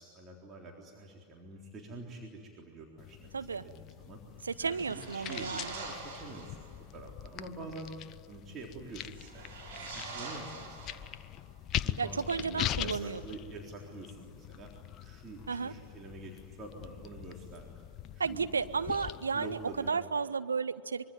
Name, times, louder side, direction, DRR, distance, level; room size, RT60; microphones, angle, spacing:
voice 1, 0.0-4.2 4.6-7.9 8.3-11.0 11.8-14.7 15.0-17.8 18.1-18.8 19.3-20.0, right 2 dB, 25° right, 0 dB, 3.8 m, -47 dB
sound 1, 3.0-19.9, left 12 dB, 35° left, 0.7 m, -42 dB
voice 2, 3.3-3.6 4.4-5.7 12.0-13.2 15.5-15.7 18.2-19.6 19.9-21.1, right 5 dB, 75° right, 12 dB, 0.8 m, -33 dB
sound 2, 4.6-6.7 9.1-11.4, right 3 dB, 55° right, 7.1 m, -44 dB
25.0 x 23.5 x 9.4 m, 2.5 s
figure-of-eight pair, 90°, 0 cm